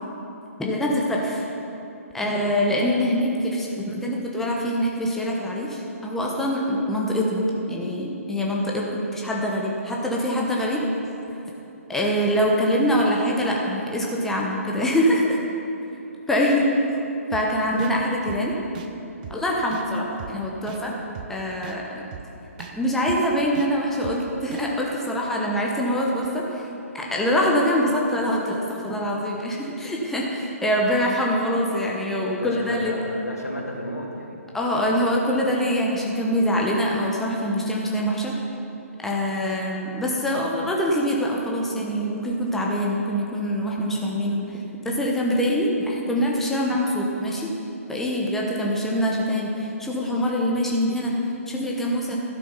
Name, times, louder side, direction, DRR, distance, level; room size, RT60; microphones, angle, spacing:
voice 1, 0.6-1.4 2.1-10.8 11.9-15.4 16.3-16.7 17.3-18.5 19.3-21.0 21.3-22.0 22.7-26.7 26.9-32.9 34.5-38.3 39.0-44.5 44.8-47.5 47.9-52.2, equal, 5° left, -3 dB, 1.0 m, -24 dB
sound 1, 17.3-17.4 17.8-17.9 18.3-18.4 18.7-18.9 19.2-19.4 19.7-19.8 20.2-20.3 20.7-20.8 21.2-21.3 21.6-21.8 22.1-22.2 22.6-22.7 23.1-23.2 23.6-23.7 24.0-24.2 24.5-24.6, right 10 dB, 30° right, 0.6 m, -38 dB
voice 2, 32.4-34.4, left 1 dB, 80° left, 0 dB, 1.9 m, -32 dB
12.0 x 7.3 x 5.6 m, 2.9 s
figure-of-eight pair, 130°, 8 cm